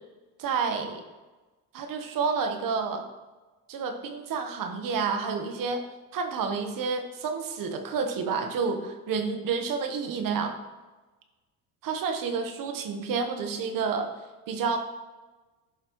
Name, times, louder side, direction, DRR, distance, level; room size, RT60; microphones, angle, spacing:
voice 1, 0.4-1.0 1.7-3.1 3.7-5.8 6.1-10.6 11.8-14.1 14.5-14.8, right 5 dB, 50° right, 6 dB, 1.3 m, -29 dB
11.0 x 5.7 x 3.1 m, 1.2 s
supercardioid pair, 95°, 41 cm